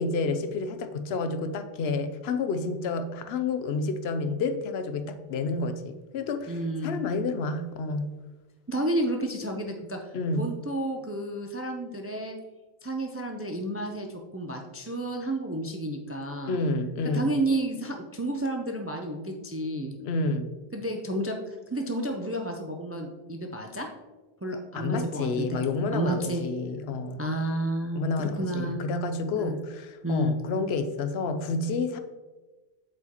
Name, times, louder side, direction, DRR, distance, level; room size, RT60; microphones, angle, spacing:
voice 1, 0.0-8.1 10.1-10.5 16.5-17.3 20.0-20.5 24.7-27.2 27.9-32.0, left 3 dB, 80° left, 9 dB, 0.8 m, -29 dB
voice 2, 6.5-7.0 8.7-10.0 10.4-12.4 12.8-16.6 17.1-20.0 20.7-21.4 21.7-23.9 24.4-25.6 25.9-26.4 27.2-28.8 29.4-29.6 30.0-30.4, right 1 dB, 25° right, 3 dB, 0.3 m, -31 dB
7.8 x 4.8 x 2.9 m, 1.2 s
omnidirectional pair, 1.1 m